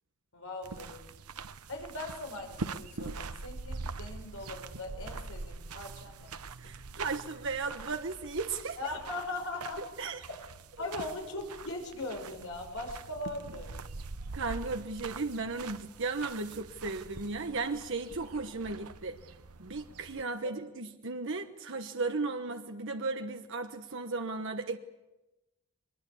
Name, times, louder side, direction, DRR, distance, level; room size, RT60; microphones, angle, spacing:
voice 1, 0.3-1.0 1.7-6.3 8.8-9.8 10.3-10.4 10.8-13.8 20.4-20.5, left 2 dB, 65° left, 3 dB, 5.4 m, -40 dB
sound 1, 0.6-20.2, right 4 dB, 85° right, 0.9 m, -44 dB
voice 2, 6.6-8.8 10.0-10.2 10.8-10.9 14.3-19.2 19.6-24.8, right 3 dB, 60° right, 6 dB, 1.1 m, -35 dB
23.0 x 21.0 x 8.4 m, 0.99 s
head